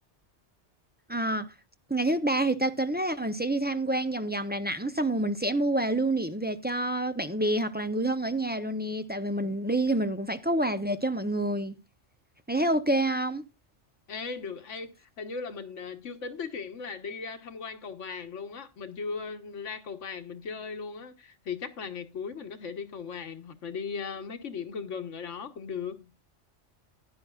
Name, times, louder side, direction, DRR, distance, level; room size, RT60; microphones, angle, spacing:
voice 1, 1.1-1.5 1.9-11.7 12.5-13.4, right 1 dB, 10° right, 0.5 m, -28 dB
voice 2, 14.1-26.1, left 5 dB, 85° left, 1.5 m, -38 dB
15.5 x 10.0 x 2.3 m
omnidirectional pair, 1.2 m